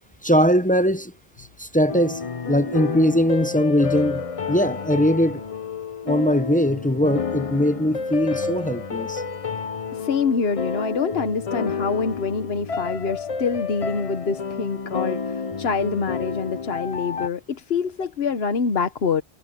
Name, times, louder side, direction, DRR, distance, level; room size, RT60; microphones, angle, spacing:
voice 1, 0.2-1.1 1.4-2.2 2.5-5.4 6.0-9.2, equal, 10° left, 0.4 m, -21 dB
sound 1, 1.9-17.3, left 5 dB, 35° left, 0.7 m, -30 dB
voice 2, 10.0-19.2, left 5 dB, 75° left, 1.3 m, -25 dB
omnidirectional pair, 1.0 m